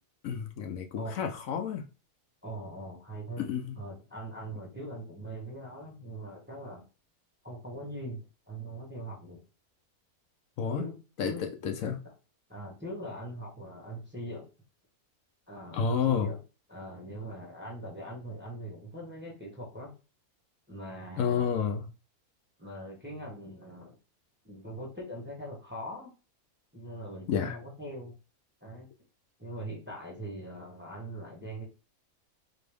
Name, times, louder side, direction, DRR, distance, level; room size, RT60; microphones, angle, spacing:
voice 1, 0.2-1.8 3.4-3.8 10.6-10.8 11.2-11.3 11.6-12.0 15.7-16.3 21.2-21.9 27.3-27.6, left 7 dB, 70° left, 1.0 m, -30 dB
voice 2, 2.4-3.4 3.7-6.8 7.4-9.4 10.7-11.0 11.2-11.5 12.0-12.1 12.5-14.5 15.5-16.4 16.7-19.9 20.7-21.5 22.6-24.0 24.4-26.1 26.7-28.1 28.6-28.9 29.4-31.6, right 1 dB, 10° right, 1.0 m, -41 dB
3.9 x 2.9 x 3.4 m
omnidirectional pair, 1.5 m